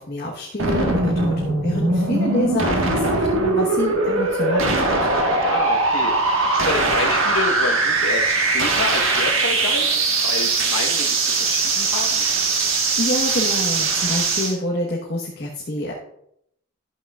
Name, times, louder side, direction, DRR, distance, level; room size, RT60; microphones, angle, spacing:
voice 1, 0.0-5.0 12.9-15.9, left 1 dB, 50° left, -3 dB, 1.2 m, -27 dB
sound 1, 0.6-14.5, right 3 dB, 85° right, 1.5 m, -20 dB
voice 2, 5.5-12.2, left 3 dB, 90° left, 5 dB, 1.2 m, -29 dB
12.0 x 7.9 x 2.4 m, 0.73 s
head